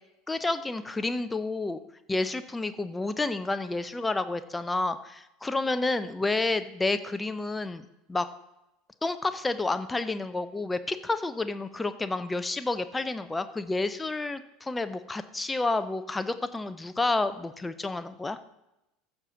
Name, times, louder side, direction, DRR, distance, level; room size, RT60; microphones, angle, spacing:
voice 1, 0.3-1.8 2.1-8.3 9.0-18.4, left 2 dB, 10° left, 12 dB, 0.6 m, -30 dB
14.5 x 5.9 x 3.8 m, 0.90 s
figure-of-eight pair, 75°, 0 cm